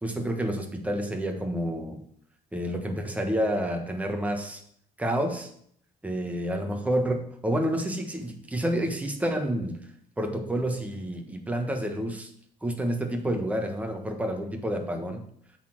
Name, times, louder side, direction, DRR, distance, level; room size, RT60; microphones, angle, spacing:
voice 1, 0.0-2.0 2.5-4.6 5.0-5.5 6.0-9.8 10.2-12.3 12.6-15.2, right 1 dB, 10° right, 3 dB, 1.4 m, -29 dB
8.0 x 4.3 x 6.4 m, 0.64 s
cardioid pair, 110°, 17 cm